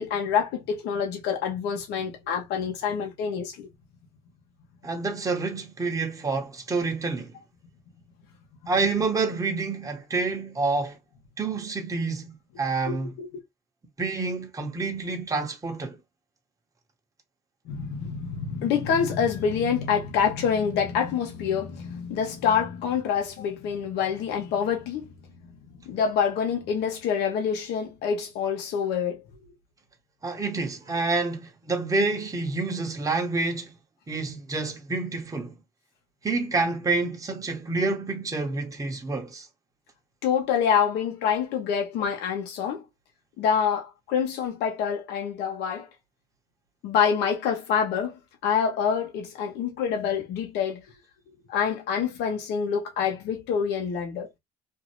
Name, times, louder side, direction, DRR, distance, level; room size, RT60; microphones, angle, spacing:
voice 1, 0.0-3.7 12.9-13.3 17.7-25.1 25.9-29.2 40.2-42.8 43.4-45.9 46.8-50.8 51.5-54.3, left 7 dB, 85° left, 0.9 m, -26 dB
voice 2, 4.8-7.4 8.7-11.0 11.4-13.1 14.0-16.0 30.2-33.7 34.1-35.5 36.2-39.5, right 3 dB, 20° right, 0.9 m, -28 dB
2.7 x 2.5 x 3.0 m
cardioid pair, 110°, 17 cm